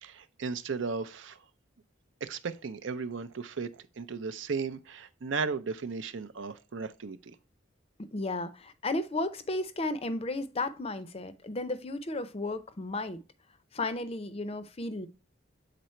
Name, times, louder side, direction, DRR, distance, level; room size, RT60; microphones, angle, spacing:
voice 1, 0.0-1.4 2.2-7.4, right 4 dB, 70° right, 0.5 m, -35 dB
voice 2, 8.0-13.2 13.7-15.1, left 2 dB, 30° left, 0.5 m, -34 dB
7.6 x 3.9 x 4.3 m
head